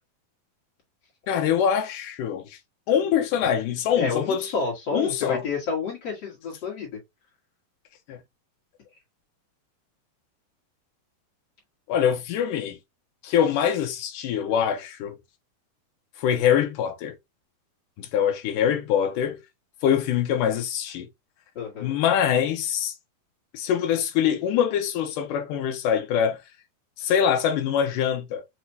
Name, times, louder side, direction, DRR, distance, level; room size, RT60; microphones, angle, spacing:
voice 1, 1.3-2.6 2.9-4.5 4.9-5.4 8.1-8.2 11.9-12.8 13.2-15.2 16.2-17.2 18.0-19.4 19.8-21.1 21.8-22.9 23.5-26.4 27.0-28.4, left 8 dB, 75° left, 2.3 m, -24 dB
voice 2, 4.0-7.0 21.5-22.0, left 4 dB, 45° left, 2.6 m, -30 dB
5.9 x 3.0 x 2.7 m
omnidirectional pair, 4.2 m